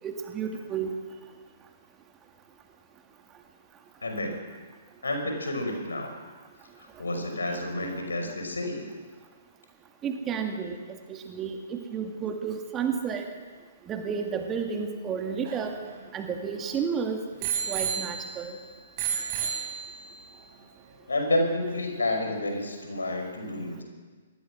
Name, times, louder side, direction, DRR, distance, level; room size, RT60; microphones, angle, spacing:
voice 1, 0.0-1.0 10.0-13.3 13.8-15.8 16.1-17.3 17.7-18.6, right 6 dB, 20° right, 4 dB, 2.3 m, -31 dB
voice 2, 4.0-4.3 5.0-6.2 6.8-8.9 21.1-23.8, left 1 dB, 70° left, 4 dB, 5.6 m, -30 dB
Bicycle bell, 15.1-16.8 17.4-18.6 19.0-20.2 21.0-21.1, right 7 dB, 35° right, 5.4 m, -32 dB
26.0 x 20.0 x 6.3 m, 1.4 s
figure-of-eight pair, 120°, 0 cm